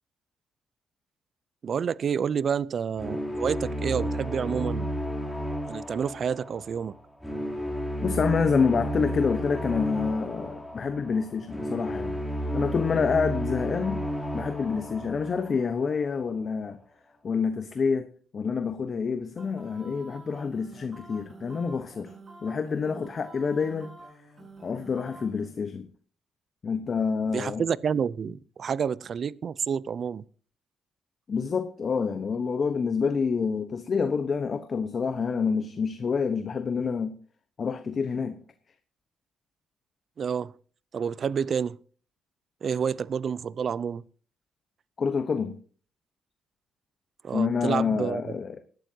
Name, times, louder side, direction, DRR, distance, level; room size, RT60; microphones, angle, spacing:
voice 1, 1.6-4.9 5.7-7.0 27.3-30.2 40.2-40.5 40.9-41.8 42.6-44.0 47.2-48.2, right 7 dB, 50° right, 0.4 m, -29 dB
sound 1, 3.0-16.1, equal, 5° left, 3.3 m, -32 dB
voice 2, 8.0-12.2 12.5-14.0 14.3-16.8 17.2-22.1 22.4-23.9 24.6-25.9 26.6-27.6 31.3-37.1 37.6-38.4 45.0-45.5 47.3-48.6, left 5 dB, 45° left, 1.0 m, -27 dB
ah ah uh oh, 19.4-25.5, right 2 dB, 35° right, 5.0 m, -48 dB
18.5 x 11.5 x 2.8 m
cardioid pair, 90°, 0 cm